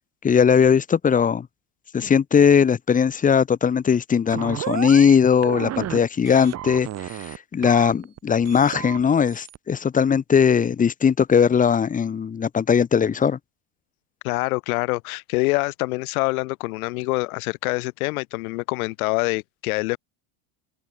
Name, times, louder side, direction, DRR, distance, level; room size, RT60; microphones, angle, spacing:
voice 1, 0.2-1.5 1.9-13.4, left 7 dB, 20° left, 1.1 m, -19 dB
sound 1, 4.3-5.2 5.4-6.0 6.3-7.4 7.6-8.2 8.5-9.6, right 12 dB, 35° right, 2.4 m, -32 dB
voice 2, 14.2-20.0, left 24 dB, 85° left, 3.4 m, -25 dB
open air
supercardioid pair, 140°, 42 cm